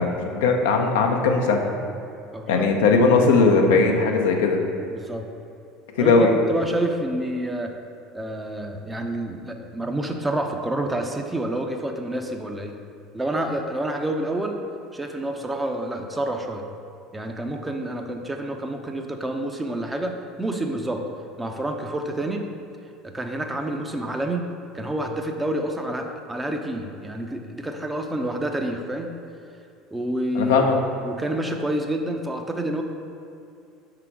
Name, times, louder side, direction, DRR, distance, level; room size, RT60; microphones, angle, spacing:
voice 1, 0.0-1.7 2.5-4.6 6.0-6.3 30.4-30.8, left 4 dB, 75° left, 2 dB, 0.6 m, -19 dB
voice 2, 2.3-2.8 4.9-5.2 6.0-7.7 8.1-12.8 13.1-14.6 14.9-16.7 17.1-21.0 21.4-22.4 23.0-24.5 24.7-29.1 29.9-30.7 31.0-32.8, right 1 dB, 15° right, 4 dB, 0.6 m, -28 dB
5.8 x 3.9 x 4.5 m, 2.6 s
hypercardioid pair, 75°, 0 cm